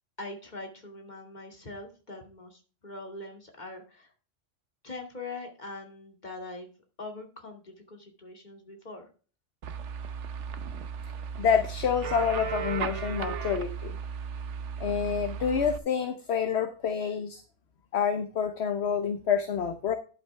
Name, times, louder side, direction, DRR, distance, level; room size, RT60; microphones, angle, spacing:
voice 1, 0.2-4.1 4.8-6.7 7.0-9.1, left 2 dB, 35° left, 3 dB, 2.6 m, -42 dB
sound 1, 9.6-15.8, right 7 dB, 70° right, 1.1 m, -36 dB
voice 2, 11.4-14.0 14.8-17.4 17.9-20.0, left 7 dB, 60° left, 8 dB, 1.2 m, -28 dB
11.0 x 8.1 x 3.4 m, 0.37 s
omnidirectional pair, 1.3 m